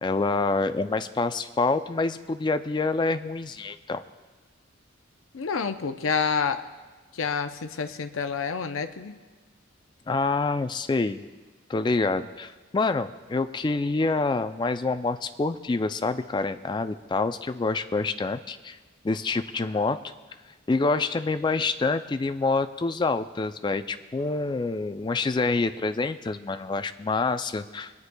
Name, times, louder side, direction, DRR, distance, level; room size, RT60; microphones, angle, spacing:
voice 1, 0.0-4.0 10.1-11.2 11.7-18.8 19.0-20.0 20.7-27.9, left 3 dB, 20° left, 11 dB, 0.3 m, -27 dB
voice 2, 5.3-6.6 7.1-9.2, left 5 dB, 85° left, 9 dB, 0.6 m, -28 dB
25.5 x 9.5 x 2.2 m, 1.3 s
head